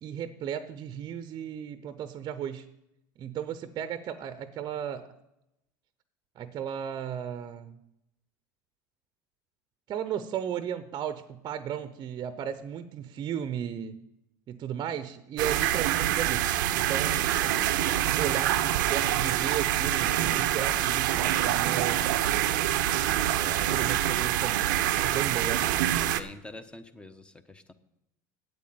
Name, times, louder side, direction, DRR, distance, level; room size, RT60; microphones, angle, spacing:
voice 1, 0.0-2.7 3.2-5.1 6.4-7.8 9.9-14.0 14.5-17.6 18.0-22.1 23.4-24.7 25.0-25.6, right 9 dB, 40° right, 12 dB, 0.7 m, -35 dB
sound 1, 15.4-26.2, right 13 dB, 75° right, 0.6 m, -26 dB
voice 2, 23.2-23.9 26.0-27.7, left 2 dB, 10° left, 11 dB, 0.9 m, -46 dB
8.5 x 8.5 x 7.7 m, 0.86 s
hypercardioid pair, 90°, 10 cm